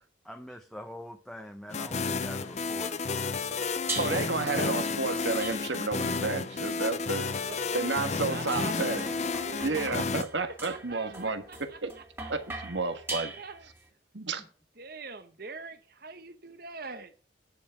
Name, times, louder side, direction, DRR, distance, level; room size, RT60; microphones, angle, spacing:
voice 1, 0.3-3.4, equal, ahead, 0.7 m, -44 dB
sound 1, 1.7-10.2, left 4 dB, 40° left, 0.6 m, -32 dB
voice 2, 1.8-2.6 7.2-9.9 10.7-12.0 13.4-13.7 14.8-17.1, right 4 dB, 55° right, 1.2 m, -44 dB
sound 2, 3.9-4.4 5.4-6.1 7.0-13.8, right 3 dB, 15° right, 2.1 m, -41 dB
voice 3, 4.0-7.2 7.7-9.0 9.6-11.9 12.3-13.4 14.1-14.4, right 3 dB, 80° right, 1.5 m, -31 dB
10.5 x 7.1 x 5.7 m
head